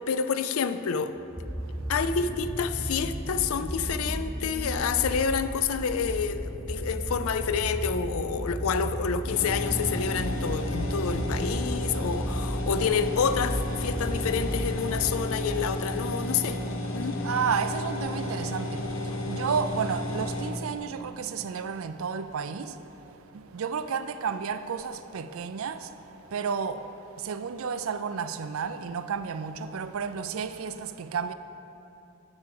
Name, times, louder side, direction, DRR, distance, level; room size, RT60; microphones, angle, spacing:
voice 1, 0.1-1.2 1.9-16.6 16.9-17.2, left 6 dB, 85° left, 0.4 m, -28 dB
sound 1, 1.2-16.7 17.6-17.7, equal, ahead, 0.5 m, -34 dB
voice 2, 1.5-1.9 17.0-31.3, right 6 dB, 80° right, 0.4 m, -32 dB
sound 2, 9.3-20.5, left 1 dB, 65° left, 0.9 m, -32 dB
9.6 x 4.7 x 7.6 m
head